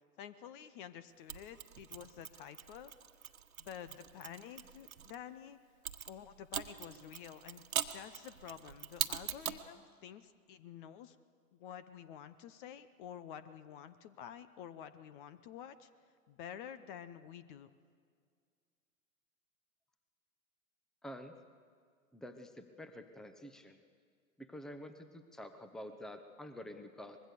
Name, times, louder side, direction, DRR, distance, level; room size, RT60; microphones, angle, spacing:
voice 1, 0.2-2.9 3.6-5.6 6.1-7.6 7.9-11.2 11.5-15.9 16.3-17.7, left 9 dB, 35° left, 14 dB, 0.9 m, -50 dB
Mechanisms, 1.3-5.1 5.8-9.7, right 9 dB, 70° right, 1.4 m, -42 dB
voice 2, 21.0-21.3 22.1-23.8 24.4-27.2, left 1 dB, ahead, 8 dB, 0.9 m, -48 dB
24.5 x 21.0 x 6.8 m, 2.1 s
figure-of-eight pair, 110°, 44 cm